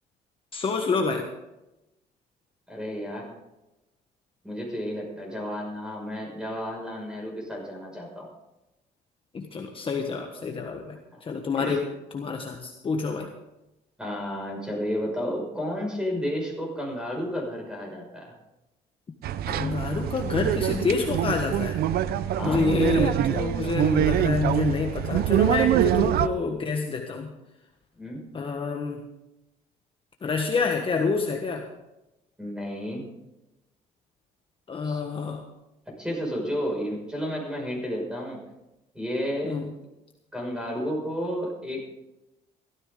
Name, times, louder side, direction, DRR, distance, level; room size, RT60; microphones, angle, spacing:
voice 1, 0.5-1.3 9.3-11.8 12.1-13.3 19.5-21.8 22.4-27.3 28.3-29.0 30.2-31.7 34.7-35.4 39.4-39.7, left 4 dB, 30° left, 3 dB, 1.3 m, -27 dB
voice 2, 2.7-3.3 4.4-8.3 11.1-11.2 11.6-11.8 14.0-18.4 22.3-22.7 28.0-28.2 32.4-33.1 34.8-35.0 36.0-38.4 38.9-39.6 40.3-41.8, equal, 5° right, 0 dB, 5.9 m, -32 dB
sound 1, 19.2-26.3, right 11 dB, 65° right, 0.6 m, -24 dB
16.0 x 13.5 x 3.8 m, 0.95 s
cardioid pair, 110°, 17 cm